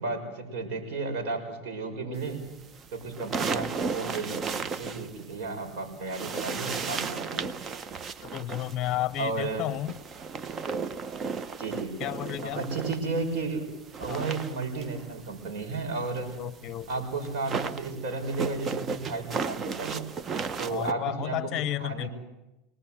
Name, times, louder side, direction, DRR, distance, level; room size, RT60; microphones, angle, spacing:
voice 1, 0.0-2.4 2.9-7.4 9.2-9.7 11.6-12.0 12.4-16.3 16.9-20.1 20.6-21.5 21.8-22.1, right 3 dB, 60° right, 4 dB, 6.1 m, -33 dB
sound 1, 2.5-5.7 6.0-13.3 13.6-20.9, right 5 dB, 35° right, 1.0 m, -35 dB
voice 2, 8.3-9.9 12.0-12.6 14.1-14.2 16.4-16.9 20.7-22.1, left 13 dB, 45° left, 18 dB, 0.7 m, -32 dB
24.5 x 19.0 x 7.9 m, 1.0 s
hypercardioid pair, 100°, 0 cm